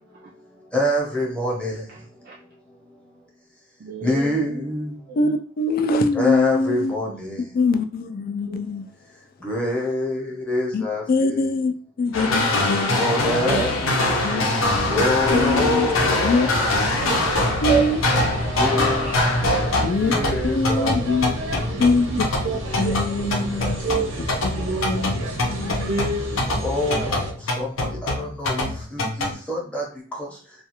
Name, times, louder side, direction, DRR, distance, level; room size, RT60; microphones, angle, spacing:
voice 1, 0.7-1.8 4.0-4.9 6.1-7.4 9.4-11.5 12.9-13.9 14.9-16.4 18.5-19.1 19.9-22.0 22.7-22.8 23.6-23.7 26.6-29.9 30.1-30.3, left 1 dB, 5° left, 0.7 m, -26 dB
voice 2, 3.8-4.8 5.1-5.3 7.1-7.2 8.4-8.6 12.6-12.7 13.4-13.6 14.9-15.5 17.1-17.2 17.7-17.8 19.0-19.2 20.0-20.5 20.8-21.2 21.7-22.6 22.8-22.9 23.2-23.5 23.8-24.1 24.5-25.0 25.6-26.4, right 4 dB, 50° right, 0.4 m, -29 dB
voice 3, 5.6-7.0 7.5-8.9 10.7-10.8 11.1-11.7 12.0-13.1 14.2-14.4 15.3-15.9 16.2-16.5 17.6-18.0 19.8-20.1 20.4-21.3 21.8-22.1 22.8-23.8 24.8-25.2 25.4-26.0, left 3 dB, 45° left, 0.3 m, -23 dB
sound 1, 12.1-29.3, left 2 dB, 70° left, 0.7 m, -24 dB
sound 2, 14.6-27.3, right 1 dB, 85° right, 0.7 m, -31 dB
2.4 x 2.3 x 2.8 m
head